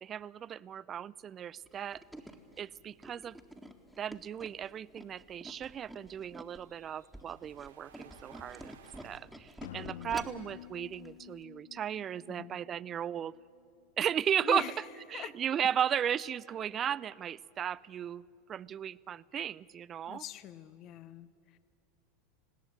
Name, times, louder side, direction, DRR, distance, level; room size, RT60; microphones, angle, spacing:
voice 1, 0.0-2.0 2.6-3.4 4.0-8.8 9.0-13.3 14.0-14.6 15.1-18.2 18.5-20.2, right 9 dB, 35° right, 21 dB, 0.4 m, -35 dB
Tools, 1.7-6.6 7.0-10.5 10.9-11.1 11.4-11.5, right 1 dB, ahead, 1.8 m, -48 dB
sound 1, 2.0-9.2, right 9 dB, 75° right, 1.2 m, -61 dB
sound 2, 9.6-13.4, left 12 dB, 70° left, 0.4 m, -49 dB
voice 2, 12.3-12.6 14.4-14.8 15.1-15.3 20.1-21.6, left 10 dB, 45° left, 16 dB, 0.9 m, -42 dB
20.0 x 17.0 x 8.8 m, 2.6 s
hypercardioid pair, 85°, 0 cm